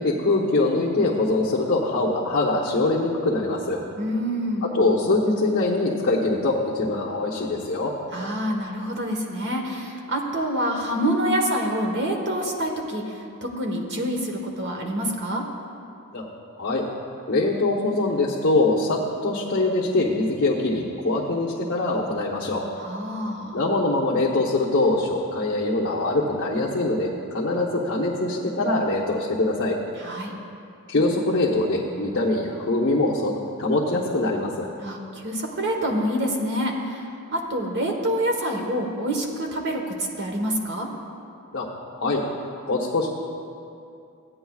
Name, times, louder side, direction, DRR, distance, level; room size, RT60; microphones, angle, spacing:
voice 1, 0.0-3.8 4.7-7.9 16.1-16.2 16.6-16.9 17.3-22.6 23.5-29.8 30.9-34.7 41.5-41.7 42.0-42.2 42.7-43.1, left 2 dB, 55° left, -6 dB, 1.0 m, -23 dB
voice 2, 4.0-4.8 8.1-15.4 22.8-23.6 30.0-30.3 34.8-40.9, equal, 55° right, 1 dB, 1.3 m, -27 dB
16.0 x 9.3 x 2.4 m, 2.6 s
head